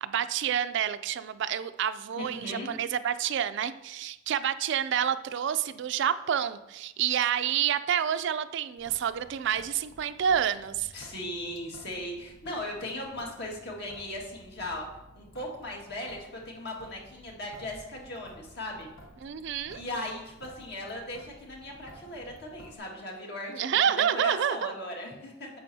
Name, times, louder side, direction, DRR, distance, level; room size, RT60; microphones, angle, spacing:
voice 1, 0.0-10.9 19.2-19.8 23.5-24.7, right 9 dB, 60° right, 12 dB, 0.4 m, -28 dB
voice 2, 2.2-2.7 10.9-14.9 15.2-18.9 19.7-23.5 24.0-25.5, left 1 dB, 55° left, -1 dB, 1.8 m, -38 dB
Traffic noise roadway noise / Drip / Trickle dribble, 8.8-22.8, equal, 75° left, 1.2 m, -53 dB
9.7 x 7.3 x 2.8 m, 0.92 s
head